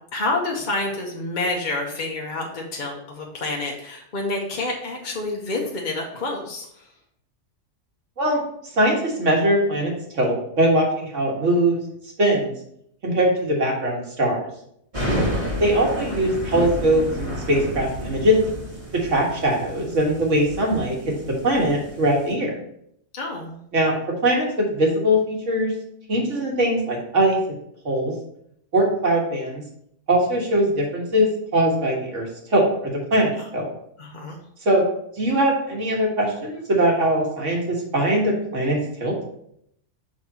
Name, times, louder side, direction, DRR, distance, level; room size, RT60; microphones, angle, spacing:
voice 1, 0.1-6.9 15.0-15.6 23.1-23.6 33.4-33.5 34.0-34.4, left 2 dB, 45° left, -1 dB, 0.9 m, -28 dB
voice 2, 8.7-11.8 12.2-12.5 13.0-14.4 15.6-18.5 18.9-22.5 23.7-25.7 26.1-27.4 27.9-28.1 28.7-29.6 30.1-33.7 34.7-34.8 35.2-39.2, right 1 dB, 80° right, -1 dB, 1.9 m, -21 dB
sound 1, 14.9-22.3, equal, 25° right, 1.7 m, -30 dB
6.5 x 3.6 x 4.2 m, 0.71 s
omnidirectional pair, 1.3 m